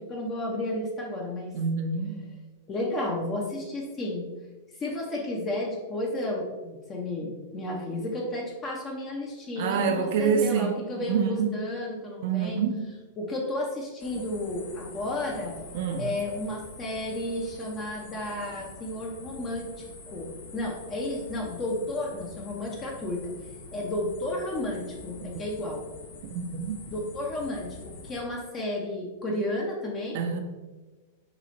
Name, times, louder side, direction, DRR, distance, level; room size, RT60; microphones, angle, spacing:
voice 1, 0.1-1.5 2.7-4.3 4.7-12.6 13.2-15.6 16.0-19.7 20.1-23.3 23.7-25.8 26.9-30.2, left 1 dB, 30° left, -2 dB, 0.6 m, -32 dB
voice 2, 1.5-2.2 9.6-10.8 11.1-11.5 12.2-12.8 15.7-16.1 25.3-25.4 26.3-26.8 30.1-30.4, right 6 dB, 60° right, 4 dB, 0.4 m, -26 dB
sound 1, 14.0-28.2, left 3 dB, 65° left, 0.8 m, -46 dB
3.0 x 2.4 x 3.9 m, 1.2 s
hypercardioid pair, 105°, 0 cm